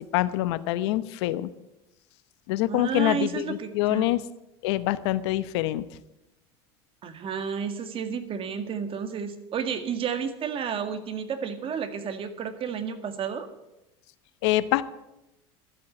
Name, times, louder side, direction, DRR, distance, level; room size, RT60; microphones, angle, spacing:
voice 1, 0.0-1.5 2.5-4.2 4.6-5.8 14.4-14.8, left 16 dB, 75° left, 15 dB, 0.9 m, -25 dB
voice 2, 2.7-4.1 7.0-13.5, right 7 dB, 40° right, 8 dB, 1.9 m, -31 dB
13.0 x 8.4 x 9.6 m, 0.91 s
supercardioid pair, 105°, 14 cm